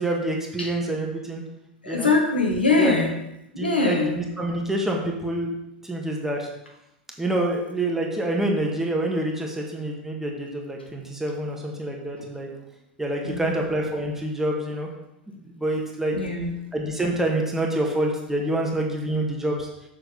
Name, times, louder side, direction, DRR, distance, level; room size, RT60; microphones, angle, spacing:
voice 1, 0.0-1.4 1.9-2.1 2.8-2.9 3.6-5.5 5.8-6.5 7.2-12.5 13.0-14.9 15.3-16.2 16.7-19.7, right 1 dB, 10° right, 0 dB, 1.7 m, -27 dB
voice 2, 1.8-3.1 3.5-4.1 13.2-13.5 16.1-16.5, left 3 dB, 90° left, 0 dB, 1.7 m, -22 dB
7.1 x 6.5 x 4.0 m, 0.86 s
figure-of-eight pair, 90°, 5 cm